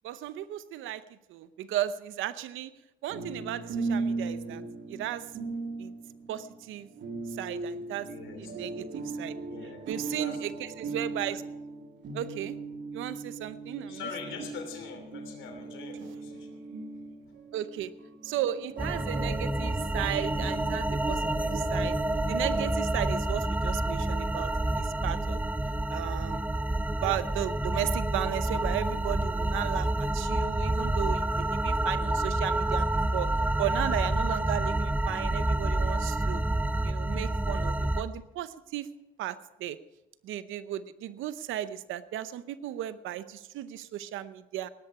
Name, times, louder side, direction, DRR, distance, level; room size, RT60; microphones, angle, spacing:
voice 1, 0.0-1.0 1.3-2.7 3.0-4.6 4.9-5.3 5.8-5.9 6.3-6.9 7.4-8.1 8.4-9.4 9.9-11.4 12.1-12.5 12.9-14.0 17.5-17.9 18.2-22.0 22.3-25.4 25.9-26.4 27.0-32.9 33.1-33.3 33.6-36.4 36.8-38.9 39.2-39.8 40.2-44.7, right 12 dB, 90° right, 14 dB, 0.7 m, -35 dB
sound 1, 3.1-22.6, right 3 dB, 65° right, 2.6 m, -39 dB
voice 2, 8.0-8.8 9.1-10.4 13.8-16.6, left 5 dB, 75° left, 5 dB, 3.2 m, -44 dB
sound 2, 18.8-38.0, right 1 dB, 10° right, 0.7 m, -28 dB
17.5 x 12.0 x 4.8 m, 0.96 s
cardioid pair, 90°, 20 cm